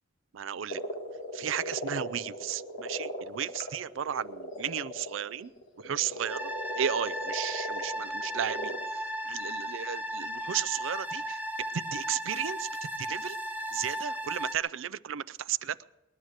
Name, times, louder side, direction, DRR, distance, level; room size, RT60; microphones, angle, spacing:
voice 1, 0.3-0.8 1.3-5.5 5.8-6.5 6.8-11.4 11.7-12.7 13.0-13.4 13.7-15.8, right 9 dB, 70° right, 17 dB, 0.4 m, -34 dB
sound 1, 0.7-8.9, equal, 65° left, 1.9 m, -38 dB
sound 2, 6.3-14.6, equal, 10° right, 0.8 m, -35 dB
20.5 x 11.0 x 6.4 m, 1.0 s
head